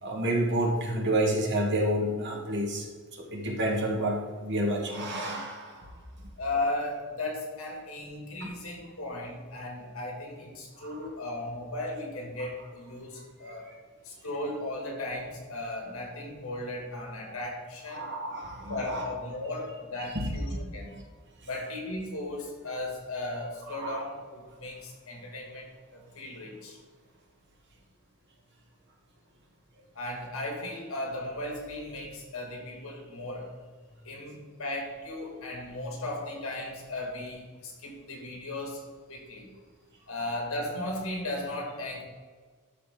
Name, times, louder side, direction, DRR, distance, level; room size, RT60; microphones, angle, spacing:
voice 1, 0.0-2.9 3.1-5.9 10.8-11.0 13.4-13.5 17.9-19.1 20.1-20.6 23.7-24.0, right 1 dB, 55° right, 0 dB, 1.7 m, -29 dB
voice 2, 6.4-13.7 14.0-18.1 18.7-20.9 21.4-26.8 29.9-33.5 34.0-38.8 39.1-39.5 40.0-42.0, left 2 dB, 70° left, 0 dB, 2.3 m, -36 dB
12.5 x 4.2 x 3.8 m, 1.5 s
head